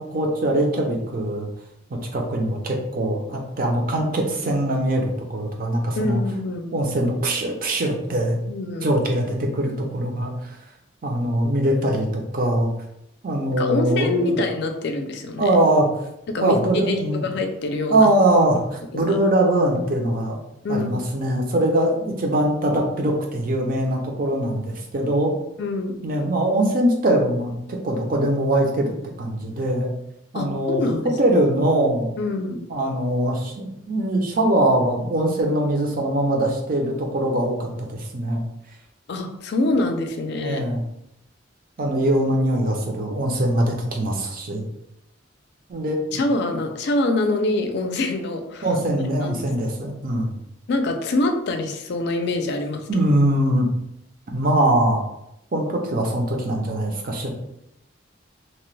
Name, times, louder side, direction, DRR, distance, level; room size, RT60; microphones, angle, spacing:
voice 1, 0.0-1.5 2.1-6.2 6.7-8.4 8.8-10.6 11.0-12.7 13.2-14.4 15.4-15.9 16.4-17.3 17.9-20.4 20.7-25.3 26.0-29.9 30.3-30.8 31.2-32.1 32.7-38.4 40.4-40.8 41.8-44.7 45.7-46.2 48.6-50.3 52.9-53.7 54.3-55.0 55.5-57.3, right 1 dB, 50° right, 1 dB, 0.6 m, -22 dB
voice 2, 6.0-6.7 8.5-9.0 13.5-15.5 16.3-18.1 18.9-19.2 20.6-20.9 25.6-25.9 30.3-31.1 32.2-32.6 39.1-40.6 46.1-48.7 49.2-49.4 50.7-53.0, left 2 dB, 65° left, 5 dB, 0.4 m, -25 dB
2.9 x 2.2 x 3.1 m, 0.81 s
head